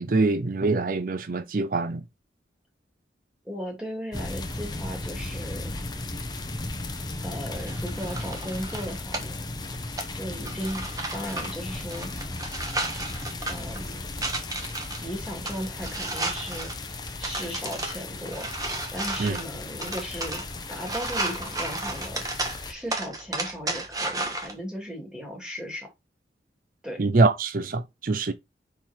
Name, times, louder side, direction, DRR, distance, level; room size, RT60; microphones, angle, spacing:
voice 1, 0.0-2.0 19.2-19.4 27.0-28.3, right 3 dB, 50° right, 0.5 m, -24 dB
voice 2, 3.4-5.8 7.2-9.5 10.1-12.1 13.5-14.1 15.0-16.7 17.2-18.5 18.9-20.4 20.7-22.2 22.7-25.9 26.8-27.1, equal, 5° right, 2.5 m, -36 dB
sound 1, 4.1-22.7, left 2 dB, 25° left, 0.9 m, -36 dB
sound 2, 7.5-24.5, right 2 dB, 20° right, 1.3 m, -34 dB
5.7 x 4.7 x 4.3 m
head